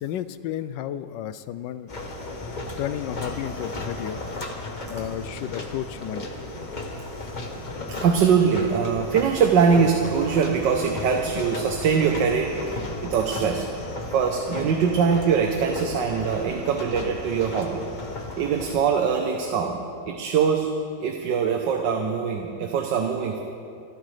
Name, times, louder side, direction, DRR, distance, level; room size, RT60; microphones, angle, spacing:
voice 1, 0.0-1.9 2.7-4.2 4.9-6.3, left 11 dB, 85° left, 13 dB, 1.3 m, -32 dB
sound 1, 1.9-18.8, left 2 dB, 30° left, 1.1 m, -35 dB
voice 2, 7.9-13.7 14.1-17.9 18.4-19.8 20.1-20.7 21.0-23.4, right 6 dB, 85° right, 3 dB, 1.6 m, -22 dB
24.5 x 13.0 x 3.3 m, 2.5 s
omnidirectional pair, 1.9 m